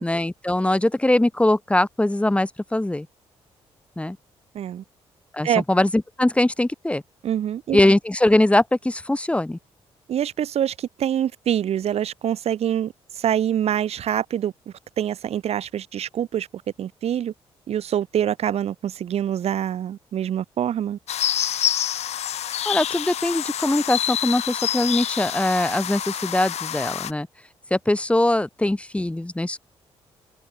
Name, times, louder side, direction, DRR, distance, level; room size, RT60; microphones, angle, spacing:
voice 1, 0.0-3.1 4.0-4.2 5.3-7.0 7.7-9.6 22.7-27.3 27.7-29.6, left 1 dB, 10° left, 3.3 m, -21 dB
voice 2, 7.2-7.8 10.1-14.5 15.0-16.5 16.8-17.3 17.7-21.0, right 10 dB, 70° right, 2.6 m, -25 dB
sound 1, 21.1-27.1, left 10 dB, 75° left, 6.7 m, -27 dB
cardioid pair, 80°, 11 cm